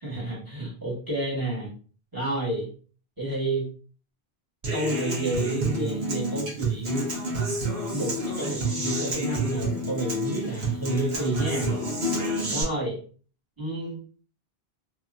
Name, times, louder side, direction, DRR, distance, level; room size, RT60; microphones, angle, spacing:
voice 1, 0.0-1.7 2.1-2.7 3.2-3.7 4.7-7.1 7.9-11.7 12.5-13.0 13.6-14.0, right 2 dB, 20° right, -5 dB, 1.4 m, -30 dB
Human voice / Acoustic guitar, 4.6-12.6, right 1 dB, 90° right, 1.2 m, -29 dB
3.0 x 2.8 x 2.5 m, 0.40 s
omnidirectional pair, 1.0 m